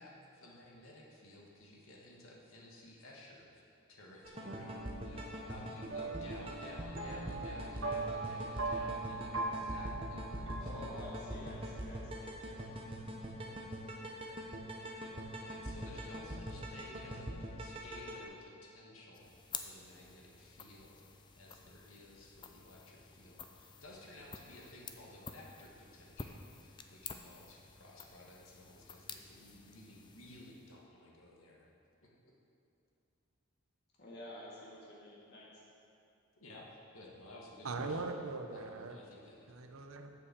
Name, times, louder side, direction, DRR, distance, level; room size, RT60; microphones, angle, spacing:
voice 1, 0.0-3.6 3.9-11.0 15.3-19.3 19.6-21.0 21.3-31.7 32.0-32.1 36.4-38.1 38.5-39.5, left 1 dB, 75° left, -2 dB, 1.7 m, -55 dB
sound 1, 4.2-18.2, equal, 25° right, 0.9 m, -43 dB
sound 2, 4.4-11.4, right 3 dB, 65° right, 1.2 m, -41 dB
voice 2, 10.6-12.7 34.0-35.6, left 1 dB, 50° left, -5 dB, 1.9 m, -49 dB
sound 3, 19.1-30.8, left 5 dB, 20° left, 0.4 m, -51 dB
voice 3, 37.6-39.0 39.5-40.1, right 3 dB, 80° right, 6 dB, 0.8 m, -40 dB
8.1 x 6.7 x 7.2 m, 2.7 s
head